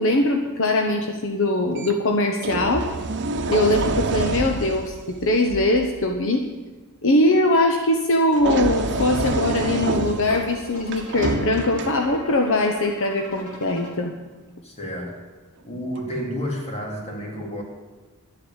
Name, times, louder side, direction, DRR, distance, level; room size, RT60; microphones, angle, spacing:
voice 1, 0.0-2.9 3.5-6.4 7.0-14.1, left 1 dB, 65° left, 4 dB, 1.1 m, -21 dB
sound 1, 1.8-1.9 2.4-5.9 8.3-12.4 13.4-13.6, right 2 dB, 55° right, 1.0 m, -27 dB
sound 2, 8.7-13.9, left 1 dB, 90° left, 2.7 m, -43 dB
voice 2, 14.6-15.3 15.6-17.6, equal, 30° left, 0 dB, 2.9 m, -30 dB
11.5 x 8.0 x 8.9 m, 1.3 s
head